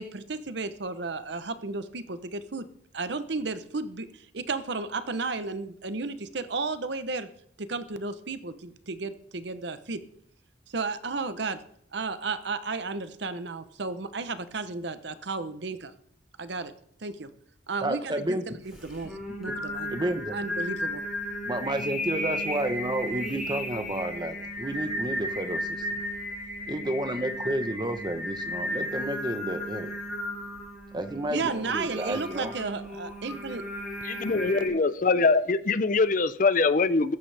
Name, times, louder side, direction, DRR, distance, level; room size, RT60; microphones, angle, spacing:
voice 1, 0.0-2.7 2.9-7.3 7.6-10.0 10.7-11.6 11.9-15.9 16.4-16.7 17.0-17.3 17.7-19.9 20.3-21.0 31.3-33.6, right 3 dB, 65° right, 0.9 m, -33 dB
voice 2, 17.8-18.4 19.9-20.4 21.5-25.8 26.7-29.9 30.9-32.5, right 1 dB, 20° right, 1.0 m, -31 dB
Singing, 18.7-34.7, equal, ahead, 6.5 m, -34 dB
voice 3, 34.1-37.2, left 3 dB, 45° left, 0.6 m, -23 dB
16.0 x 13.5 x 3.4 m
head